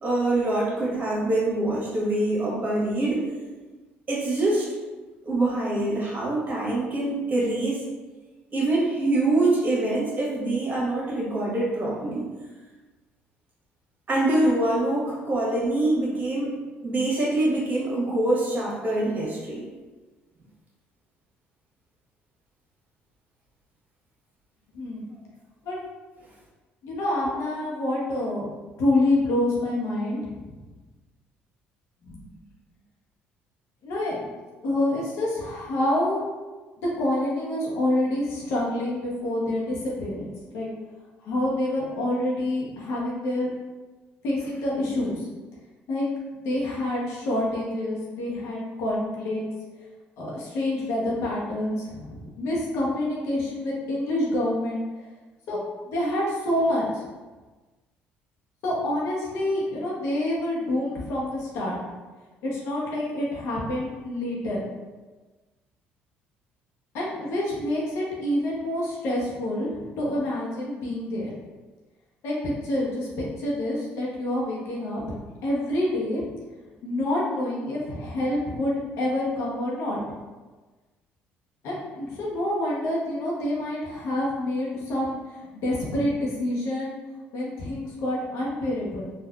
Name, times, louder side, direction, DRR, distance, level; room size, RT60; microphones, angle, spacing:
voice 1, 0.0-3.2 4.1-4.7 5.2-7.8 8.5-12.3 14.1-16.5 16.8-19.7, right 2 dB, 35° right, -5 dB, 1.3 m, -24 dB
voice 2, 26.8-28.5 28.8-30.5 32.0-32.2 33.8-34.3 34.6-36.2 36.8-40.3 40.5-40.7 41.2-43.5 44.2-45.3 45.9-46.1 46.4-49.4 50.2-54.8 55.5-55.6 55.9-57.0 58.6-61.8 62.4-64.6 66.9-71.3 72.2-76.3 76.8-80.0 81.6-87.0 87.3-89.0, left 1 dB, 70° left, -4 dB, 0.9 m, -27 dB
3.5 x 2.5 x 2.4 m, 1.3 s
supercardioid pair, 70°, 5 cm